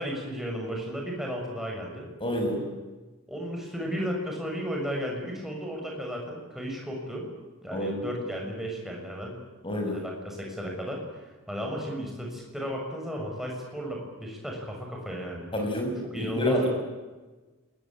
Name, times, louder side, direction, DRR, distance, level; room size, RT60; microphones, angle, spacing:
voice 1, 0.0-2.0 3.3-7.3 7.6-9.4 9.9-15.5 16.1-16.7, equal, ahead, -1 dB, 6.8 m, -34 dB
voice 2, 2.2-2.6 7.7-8.1 9.6-10.0 15.5-16.7, left 1 dB, 25° left, 3 dB, 6.4 m, -28 dB
28.5 x 21.5 x 8.9 m, 1.2 s
head